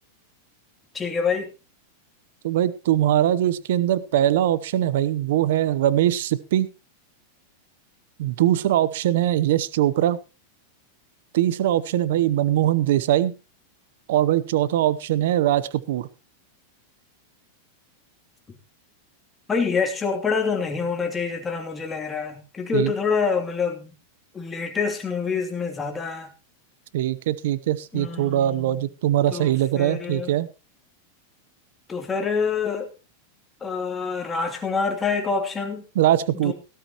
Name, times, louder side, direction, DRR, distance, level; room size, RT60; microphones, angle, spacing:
voice 1, 0.9-1.5 19.5-23.9 24.3-26.3 27.9-28.7 29.3-30.3 31.9-32.9 33.6-35.8 36.4-36.5, left 5 dB, 15° left, 3 dB, 2.9 m, -26 dB
voice 2, 2.4-6.7 8.2-10.2 11.3-13.4 14.1-16.1 22.7-22.9 26.9-30.5 35.9-36.5, right 12 dB, 70° right, 17 dB, 0.8 m, -21 dB
17.5 x 12.5 x 3.0 m, 0.30 s
hypercardioid pair, 125°, 0 cm